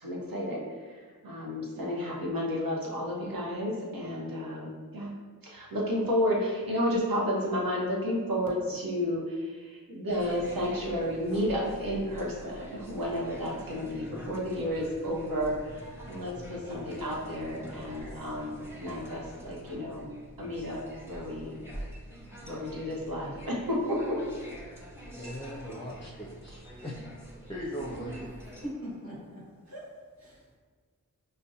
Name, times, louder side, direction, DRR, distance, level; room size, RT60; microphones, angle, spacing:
voice 1, 0.0-5.1 5.4-20.1 20.4-21.6 22.4-24.2, equal, 75° right, -3 dB, 1.0 m, -32 dB
sound 1, 10.1-28.7, right 1 dB, 5° right, 0.9 m, -46 dB
voice 2, 25.2-27.0 27.5-28.4, equal, 15° left, -4 dB, 0.5 m, -39 dB
voice 3, 28.5-30.6, equal, 50° right, -8 dB, 1.3 m, -42 dB
5.0 x 2.1 x 2.7 m, 1.5 s
cardioid pair, 50°, 35 cm